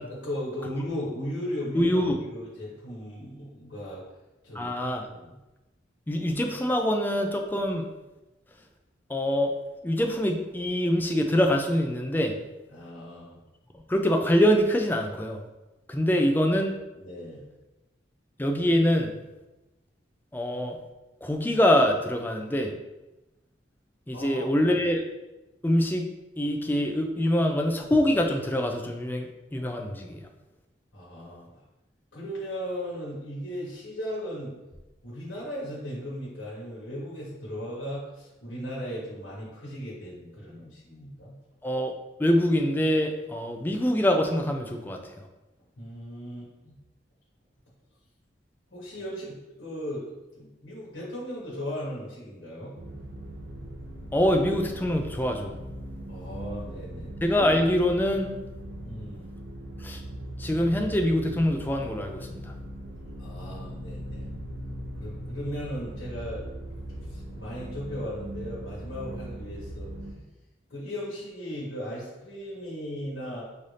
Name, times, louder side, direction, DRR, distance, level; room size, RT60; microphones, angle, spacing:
voice 1, 0.1-1.8 2.3-4.0 4.4-5.4 12.7-13.4 16.1-16.5 16.9-17.4 24.1-24.5 30.9-31.5 32.1-34.5 35.0-41.3 45.8-46.8 48.7-52.7 56.1-57.1 58.8-59.3 63.2-64.3 64.9-66.4 67.1-69.9 70.7-73.4, equal, 85° left, -6 dB, 1.2 m, -37 dB
voice 2, 1.7-2.2 4.5-5.1 6.1-7.9 9.1-9.5 9.8-12.3 13.9-15.4 15.9-16.7 18.4-19.1 20.3-20.8 21.2-22.7 24.1-25.0 25.6-26.1 26.4-30.2 41.6-41.9 42.2-45.0 54.1-55.5 57.2-58.3 59.8-60.0 60.4-62.4, equal, 10° left, 3 dB, 0.4 m, -24 dB
sound 1, 52.7-70.1, equal, 70° right, 0.8 m, -39 dB
5.4 x 2.6 x 3.2 m, 1.0 s
head